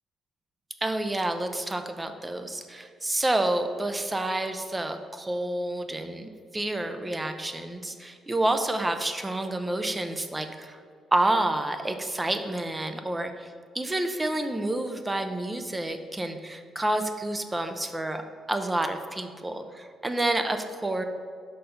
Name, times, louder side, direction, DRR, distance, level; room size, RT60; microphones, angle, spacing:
voice 1, 0.8-10.8 11.1-18.2 18.5-21.0, right 1 dB, 20° right, 7 dB, 0.5 m, -29 dB
5.4 x 4.4 x 5.0 m, 2.2 s
cardioid pair, 75°, 0 cm